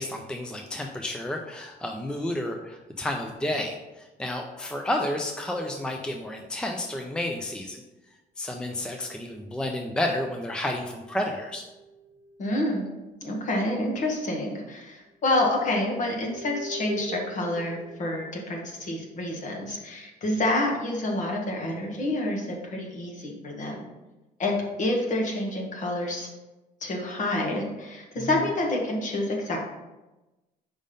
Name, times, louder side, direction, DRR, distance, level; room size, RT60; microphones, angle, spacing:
voice 1, 0.0-7.8 8.4-11.6 28.2-28.4, left 1 dB, 5° left, 2 dB, 0.5 m, -31 dB
sound 1, 6.0-6.3 8.6-9.5 10.1-12.3 13.2-13.5 13.7-14.2 14.9-19.6, left 1 dB, 25° right, 1.7 m, -44 dB
voice 2, 12.4-12.8 13.2-23.9 24.4-26.3 26.8-29.6, left 1 dB, 45° left, 0 dB, 1.6 m, -28 dB
5.2 x 3.6 x 5.3 m, 1.1 s
cardioid pair, 110°, 17 cm